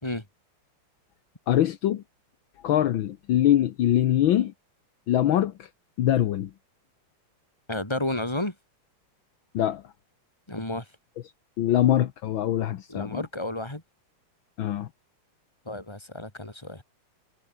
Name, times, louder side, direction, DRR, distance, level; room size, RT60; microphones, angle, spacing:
voice 1, 1.5-2.0 2.6-4.5 5.1-5.7 6.0-6.5 9.5-9.8 11.6-13.2 14.6-14.9, left 12 dB, 70° left, 1.7 m, -23 dB
voice 2, 7.7-8.5 10.5-10.9 12.9-13.8 15.7-16.8, left 1 dB, 10° left, 3.9 m, -31 dB
omnidirectional pair, 2.3 m